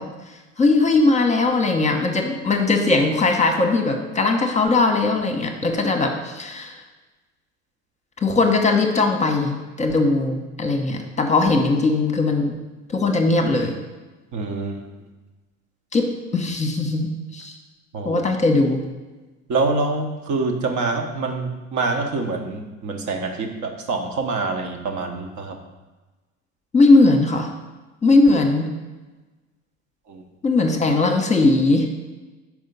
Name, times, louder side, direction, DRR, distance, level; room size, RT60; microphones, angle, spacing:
voice 1, 0.0-6.8 8.2-12.6 12.9-13.8 15.9-16.1 16.3-17.6 18.0-18.8 26.7-27.5 28.0-28.7 30.4-31.9, left 3 dB, 20° left, 3 dB, 1.0 m, -19 dB
voice 2, 14.3-14.8 17.9-18.2 19.5-25.6 30.1-30.2, right 3 dB, 45° right, 4 dB, 1.1 m, -25 dB
5.5 x 4.8 x 5.4 m, 1.2 s
hypercardioid pair, 70°, 39 cm